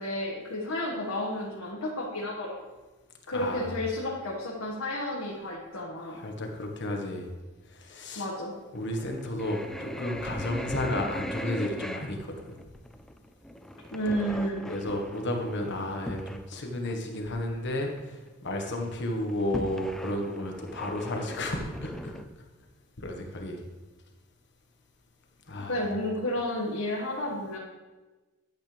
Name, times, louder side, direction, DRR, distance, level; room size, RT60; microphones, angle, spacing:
voice 1, 0.0-2.6 3.3-6.2 8.1-8.5 13.9-14.6 25.7-27.6, left 1 dB, 80° left, -4 dB, 1.8 m, -31 dB
voice 2, 3.3-3.7 6.1-7.3 7.7-8.3 8.7-12.4 14.7-22.2 23.0-23.6 25.5-25.8, left 1 dB, 60° left, 2 dB, 1.5 m, -32 dB
sound 1, 8.7-16.5 16.8-16.9 17.4-17.5 17.7-18.2 18.5-22.2, equal, ahead, 0.4 m, -40 dB
12.0 x 8.5 x 3.4 m, 1.2 s
head